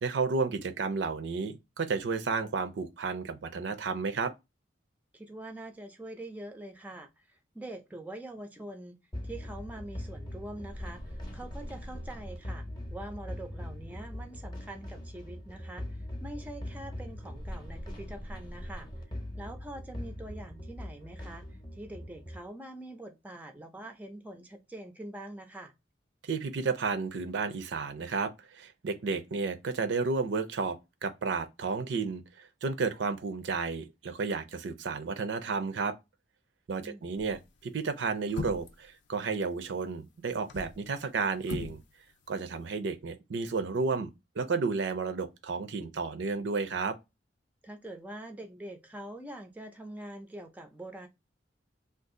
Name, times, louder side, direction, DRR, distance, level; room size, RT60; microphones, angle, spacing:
voice 1, 0.0-4.3 26.2-35.9 36.7-41.8 42.3-44.1 44.4-47.0, right 4 dB, 70° right, 0.5 m, -32 dB
voice 2, 5.1-9.0 9.2-15.8 16.2-18.9 19.4-25.7 36.8-37.1 47.6-51.1, right 1 dB, 10° right, 0.4 m, -44 dB
sound 1, 9.1-22.4, left 1 dB, 25° left, 0.7 m, -41 dB
sound 2, 37.2-37.5 38.3-38.8 40.3-40.8 41.4-41.8 42.1-42.2, left 4 dB, 75° left, 0.5 m, -38 dB
2.6 x 2.3 x 3.6 m
head